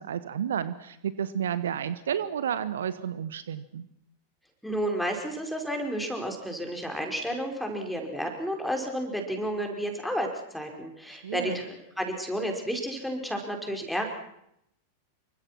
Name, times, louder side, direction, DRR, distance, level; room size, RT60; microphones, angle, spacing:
voice 1, 0.0-3.9 11.2-11.6, right 8 dB, 65° right, 15 dB, 1.1 m, -31 dB
voice 2, 4.6-14.1, equal, ahead, 3 dB, 5.5 m, -31 dB
27.5 x 24.5 x 6.2 m, 0.77 s
figure-of-eight pair, 90°, 0 cm